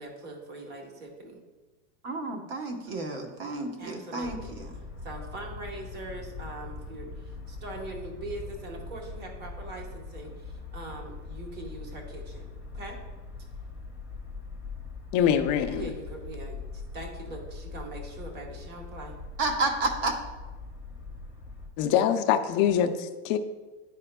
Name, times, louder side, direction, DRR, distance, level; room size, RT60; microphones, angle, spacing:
voice 1, 0.0-1.4 2.9-3.0 3.8-4.5 5.0-12.5 12.7-13.0 15.7-19.1, right 2 dB, 25° right, 1 dB, 1.1 m, -41 dB
voice 2, 2.0-4.7 19.4-20.1, right 2 dB, 50° right, 3 dB, 1.0 m, -31 dB
sound 1, 4.2-21.7, left 3 dB, 5° right, 0.8 m, -42 dB
voice 3, 15.1-15.9 21.8-23.4, left 9 dB, 30° left, 6 dB, 0.4 m, -24 dB
11.0 x 4.9 x 2.2 m, 1.2 s
supercardioid pair, 150°, 37 cm